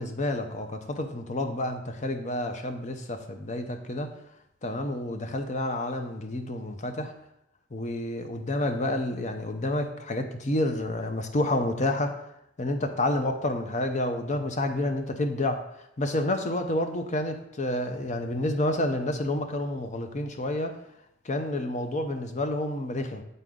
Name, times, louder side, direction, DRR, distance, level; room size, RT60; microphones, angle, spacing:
voice 1, 0.0-4.1 4.6-7.1 7.7-12.2 12.6-15.6 16.0-20.8 21.2-23.2, left 1 dB, 40° left, 6 dB, 0.7 m, -29 dB
9.3 x 4.0 x 3.7 m, 0.80 s
head